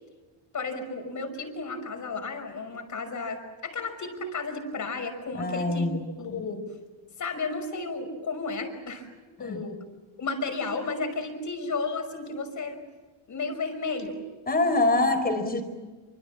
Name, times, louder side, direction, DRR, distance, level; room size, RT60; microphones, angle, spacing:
voice 1, 0.5-6.7 7.2-9.1 9.4-9.8 10.2-12.8 13.3-14.2, left 3 dB, 35° left, 7 dB, 5.7 m, -33 dB
voice 2, 5.4-6.0 9.4-9.6 14.5-15.6, left 2 dB, 20° left, 7 dB, 4.6 m, -24 dB
27.5 x 26.5 x 7.4 m, 1.3 s
cardioid pair, 150°, 49 cm